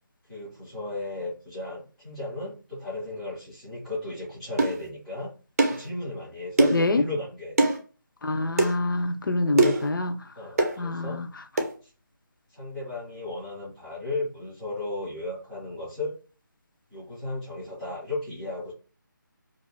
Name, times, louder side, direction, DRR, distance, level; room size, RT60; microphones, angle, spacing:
voice 1, 0.3-5.3 5.7-7.6 9.4-9.8 10.4-11.2 11.8-11.9 12.5-16.1 16.9-18.7, left 2 dB, ahead, 0.3 m, -35 dB
sound 1, 4.6-4.8 5.6-5.8 6.6-6.9 7.6-7.8 8.6-8.7 9.6-9.9 10.6-10.8 11.6-11.7, right 2 dB, 45° right, 0.6 m, -21 dB
voice 2, 6.7-7.0 8.2-10.2 10.8-11.3, left 2 dB, 70° left, 0.5 m, -26 dB
2.4 x 2.1 x 3.1 m
figure-of-eight pair, 165°, 11 cm